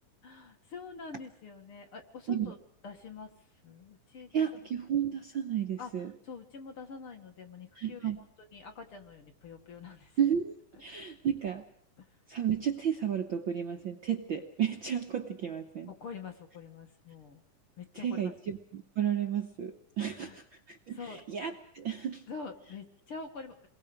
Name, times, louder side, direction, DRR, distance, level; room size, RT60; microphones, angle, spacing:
voice 1, 0.2-2.6 2.8-3.3 3.6-4.4 5.8-5.9 6.2-8.1 8.5-10.2 12.0-12.1 15.9-17.4 17.8-18.3 20.2-20.4 20.9-21.2 22.3-23.6, left 5 dB, 50° left, 5 dB, 2.2 m, -45 dB
voice 2, 4.3-6.1 7.7-8.2 10.2-11.7 12.3-15.9 17.9-22.2, right 9 dB, 55° right, 4 dB, 1.4 m, -32 dB
28.5 x 21.5 x 5.1 m, 0.64 s
omnidirectional pair, 3.6 m